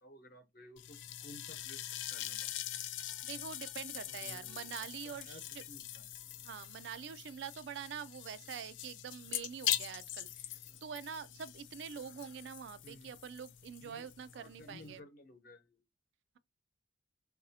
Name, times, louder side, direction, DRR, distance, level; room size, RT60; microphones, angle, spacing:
voice 1, 0.0-1.8 2.1-2.5 4.0-4.7 5.0-6.1 12.8-13.1 13.8-14.1 14.3-15.8, left 1 dB, 50° left, 0.9 m, -55 dB
sound 1, 0.8-15.0, left 12 dB, 90° left, 0.4 m, -43 dB
voice 2, 3.2-5.4 6.4-15.0, right 7 dB, 75° right, 0.3 m, -45 dB
3.9 x 2.6 x 2.7 m
head